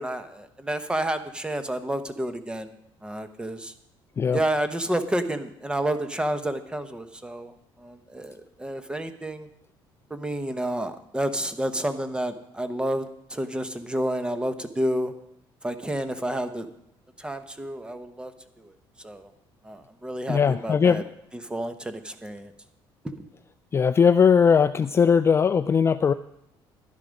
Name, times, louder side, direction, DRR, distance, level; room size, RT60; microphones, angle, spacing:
voice 1, 0.0-2.7 3.0-3.7 4.3-9.5 10.1-15.1 15.6-16.7 17.2-18.3 18.6-18.7 19.0-19.3 19.6-21.0 21.3-22.5 23.0-23.2, right 1 dB, 10° right, 9 dB, 1.0 m, -30 dB
voice 2, 4.2-4.5 20.3-21.0 23.7-26.1, left 6 dB, 25° left, 12 dB, 0.3 m, -19 dB
11.5 x 10.5 x 5.2 m, 0.78 s
cardioid pair, 115°, 10 cm